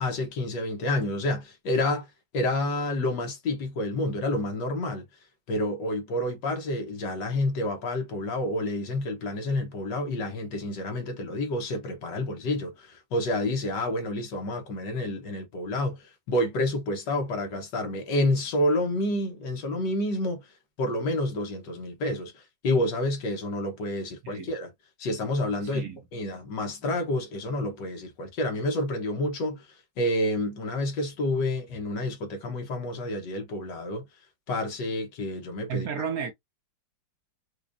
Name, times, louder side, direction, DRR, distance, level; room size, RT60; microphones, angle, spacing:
voice 1, 0.0-2.1 2.3-5.0 5.5-20.4 20.8-24.7 25.0-29.7 30.0-34.1 34.5-35.9, left 1 dB, 70° left, 1.6 m, -29 dB
voice 2, 25.6-26.0 35.7-36.3, right 7 dB, 60° right, 1.1 m, -32 dB
4.9 x 2.4 x 2.5 m
omnidirectional pair, 2.0 m